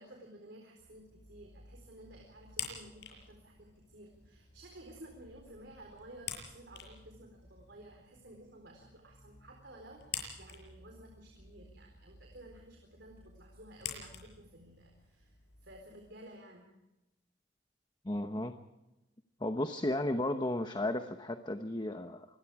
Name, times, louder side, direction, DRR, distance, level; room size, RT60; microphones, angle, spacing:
voice 1, 0.0-15.4 15.6-16.7, right 1 dB, 70° right, 2 dB, 4.2 m, -54 dB
sound 1, 0.8-16.1, left 7 dB, 65° left, 7.0 m, -49 dB
voice 2, 18.0-18.6 19.4-22.3, left 1 dB, 25° left, 7 dB, 1.0 m, -34 dB
27.0 x 21.0 x 4.9 m, 0.98 s
head